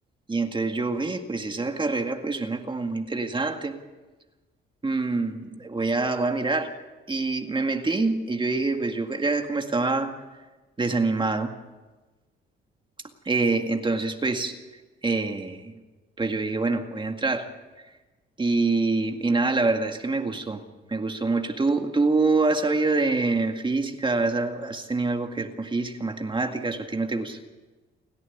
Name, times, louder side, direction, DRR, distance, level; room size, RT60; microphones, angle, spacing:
voice 1, 0.3-3.7 4.8-6.7 7.1-10.1 10.8-11.5 13.3-14.6 15.0-15.7 16.2-17.5 18.4-20.6 20.9-27.4, right 3 dB, 25° right, 5 dB, 2.0 m, -25 dB
30.0 x 11.0 x 9.6 m, 1.2 s
cardioid pair, 90°, 20 cm